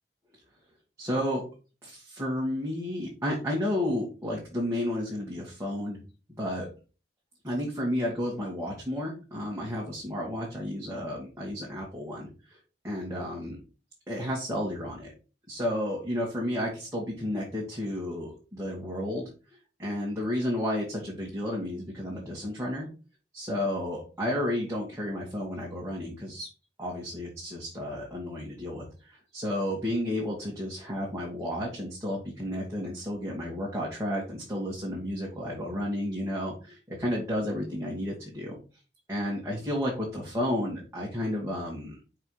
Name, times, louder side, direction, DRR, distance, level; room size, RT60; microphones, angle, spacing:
voice 1, 1.0-1.4 1.8-6.0 6.4-6.6 7.4-12.6 12.8-13.6 14.1-15.1 15.5-19.2 19.8-22.9 23.3-26.5 26.8-38.6 39.1-42.0, left 1 dB, 15° right, -4 dB, 1.9 m, -32 dB
5.6 x 4.8 x 4.7 m, 0.34 s
head